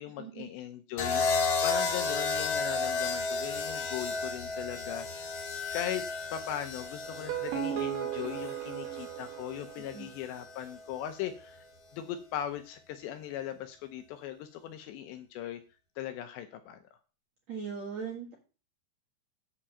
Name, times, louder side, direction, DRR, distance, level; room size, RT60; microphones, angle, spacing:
voice 1, 0.0-5.1 5.7-6.0 6.3-11.6 11.9-15.6 16.0-16.8, left 10 dB, 80° left, 8 dB, 2.7 m, -38 dB
sound 1, 1.0-9.1 10.3-10.7, left 4 dB, 55° left, 1.8 m, -32 dB
sound 2, 7.1-10.2, right 10 dB, 75° right, 3.8 m, -36 dB
voice 2, 9.8-10.1 17.5-18.3, right 6 dB, 55° right, -1 dB, 2.0 m, -39 dB
8.7 x 7.4 x 5.6 m, 0.35 s
omnidirectional pair, 5.6 m